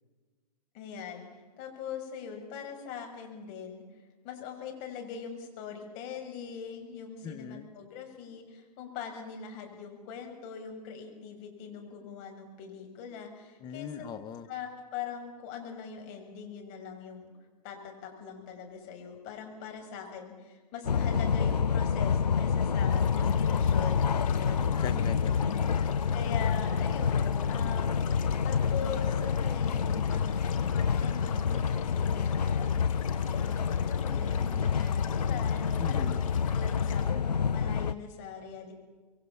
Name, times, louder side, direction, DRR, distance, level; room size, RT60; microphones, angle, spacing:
voice 1, 0.7-3.8 4.2-14.1 14.5-17.3 17.6-25.1 26.1-27.9 28.4-32.8 33.4-36.1 36.5-38.7, left 7 dB, 35° left, 3 dB, 6.3 m, -42 dB
voice 2, 7.2-7.7 13.6-14.5 24.7-26.1 35.8-36.2, left 7 dB, 20° left, 9 dB, 1.3 m, -40 dB
sound 1, 20.8-37.9, left 6 dB, 85° left, 0.7 m, -28 dB
sound 2, 22.9-37.1, left 10 dB, 55° left, 2.4 m, -48 dB
26.0 x 22.5 x 7.2 m, 1.3 s
hypercardioid pair, 120°, 20 cm